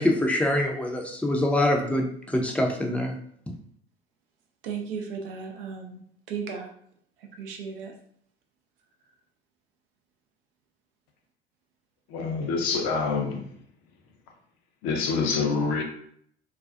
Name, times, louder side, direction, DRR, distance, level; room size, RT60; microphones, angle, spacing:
voice 1, 0.0-3.1, left 1 dB, 5° left, 0.5 m, -24 dB
voice 2, 4.6-6.7 7.4-7.9, right 6 dB, 70° right, 0.5 m, -35 dB
voice 3, 12.1-13.4 14.8-15.8, left 4 dB, 55° left, 0.6 m, -26 dB
2.4 x 2.2 x 2.5 m
figure-of-eight pair, 60°, 29 cm